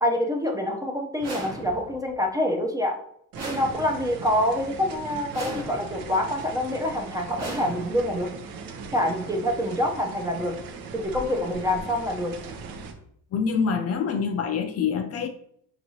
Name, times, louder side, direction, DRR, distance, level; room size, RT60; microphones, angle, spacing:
voice 1, 0.0-3.0 3.4-8.3 8.9-10.6 10.9-12.3, left 1 dB, 10° right, 0.5 m, -26 dB
sound 1, 1.2-2.1 3.3-4.3 5.3-6.1 7.3-8.3, right 2 dB, 45° right, 1.0 m, -36 dB
sound 2, 3.3-12.9, right 4 dB, 70° right, 0.7 m, -39 dB
voice 2, 13.3-15.3, left 6 dB, 45° left, 0.4 m, -25 dB
4.6 x 2.9 x 2.7 m
cardioid pair, 115°, 36 cm